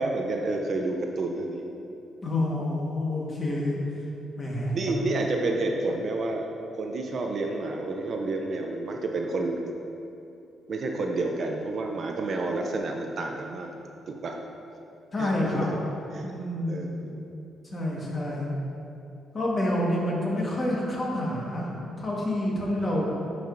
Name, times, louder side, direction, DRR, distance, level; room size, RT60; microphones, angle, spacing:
voice 1, 0.0-1.6 4.7-6.5 6.8-9.6 10.7-13.7 14.1-14.4 15.2-15.8 16.1-16.3 16.7-17.1, right 2 dB, 45° right, 2 dB, 0.5 m, -30 dB
voice 2, 2.2-3.8 4.4-5.1 15.1-15.7 16.2-16.9 17.7-18.6 19.3-21.7 22.0-23.1, left 1 dB, 25° left, -4 dB, 1.3 m, -28 dB
10.0 x 4.7 x 2.6 m, 2.8 s
cardioid pair, 135°, 0 cm